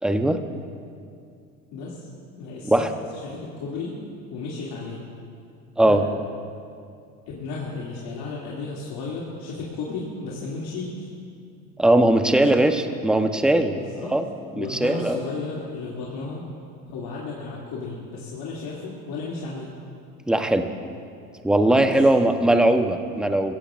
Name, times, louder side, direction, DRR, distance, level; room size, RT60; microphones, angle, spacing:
voice 1, 0.0-0.4 2.6-2.9 5.8-6.0 11.8-13.8 14.1-14.2 14.6-15.2 20.3-20.7 21.4-23.6, right 1 dB, ahead, 7 dB, 0.9 m, -19 dB
voice 2, 1.7-2.1 2.4-2.8 3.2-4.0 4.3-5.0 5.8-6.0 7.3-11.1 13.7-14.1 14.5-16.5 16.9-19.7 21.8-22.1, left 4 dB, 55° left, -5 dB, 2.7 m, -34 dB
22.0 x 16.5 x 2.5 m, 2.4 s
hypercardioid pair, 75°, 45 cm